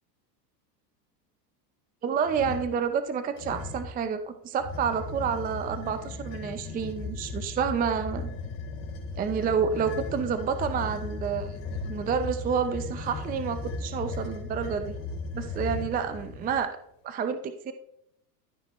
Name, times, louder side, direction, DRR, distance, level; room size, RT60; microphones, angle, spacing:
voice 1, 2.0-8.3 9.2-11.6 11.9-14.9 15.3-16.8 17.0-17.7, right 6 dB, 20° right, 10 dB, 0.5 m, -29 dB
sound 1, 2.2-2.8 3.4-4.0 4.6-16.6, left 3 dB, 55° left, 3.5 m, -36 dB
13.0 x 5.9 x 3.0 m, 0.75 s
supercardioid pair, 115°, 50 cm